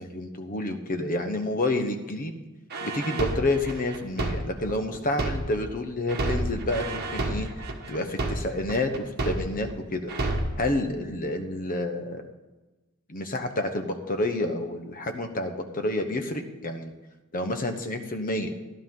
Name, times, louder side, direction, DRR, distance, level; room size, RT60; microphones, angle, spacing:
voice 1, 0.0-2.3 2.8-7.5 7.9-10.1 10.6-12.2 13.1-16.9 17.3-18.5, left 1 dB, 40° left, 6 dB, 1.0 m, -29 dB
sound 1, 2.7-5.7 6.1-9.7 10.1-10.7, right 2 dB, 45° right, 1.5 m, -30 dB
15.5 x 11.0 x 3.8 m, 1.1 s
head